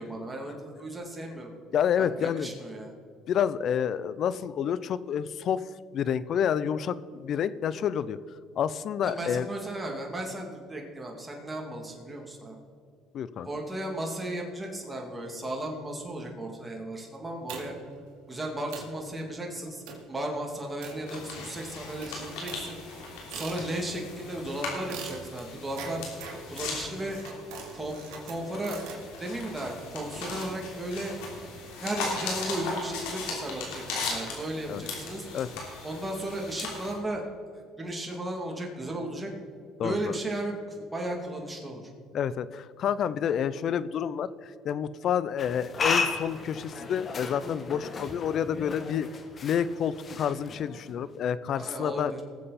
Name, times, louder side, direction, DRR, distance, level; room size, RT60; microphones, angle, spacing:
voice 1, 0.0-1.5 2.0-2.9 9.0-12.6 13.4-17.7 18.3-22.8 23.3-26.0 26.5-27.2 27.7-28.0 28.2-28.8 29.2-31.1 31.8-35.3 35.8-37.3 37.5-39.3 39.8-41.8 51.5-52.2, right 1 dB, 15° right, 0 dB, 2.5 m, -35 dB
voice 2, 1.7-2.5 3.3-5.6 5.9-8.2 8.6-9.5 13.1-13.5 34.7-34.8 35.3-35.5 39.8-40.1 42.1-49.1 49.4-52.1, left 8 dB, 55° left, 16 dB, 0.5 m, -29 dB
sound 1, 17.5-18.0 18.4-18.5 18.7-19.0 19.9-20.2 20.8-21.5 22.0-24.0 24.9-29.0, right 5 dB, 80° right, 2.3 m, -43 dB
sound 2, 21.1-36.9, left 3 dB, 85° left, 3.2 m, -38 dB
sound 3, 45.4-51.0, left 5 dB, 40° left, 1.3 m, -34 dB
20.0 x 7.6 x 4.2 m, 2.2 s
supercardioid pair, 95°, 0 cm